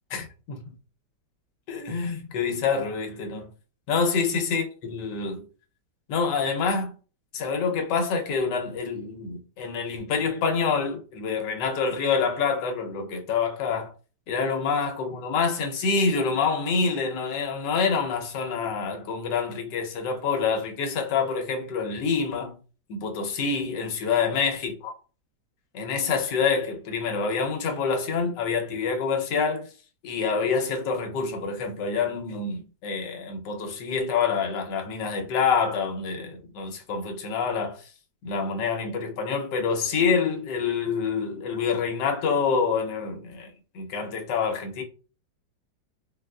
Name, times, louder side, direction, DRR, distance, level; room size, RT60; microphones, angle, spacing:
voice 1, 0.1-0.6 1.7-3.5 3.9-5.4 6.1-6.9 7.3-13.9 14.3-22.5 22.9-24.9 25.7-29.7 30.0-37.8 38.2-44.8, left 5 dB, 75° left, 1.3 m, -27 dB
3.8 x 2.4 x 2.2 m
omnidirectional pair, 1.9 m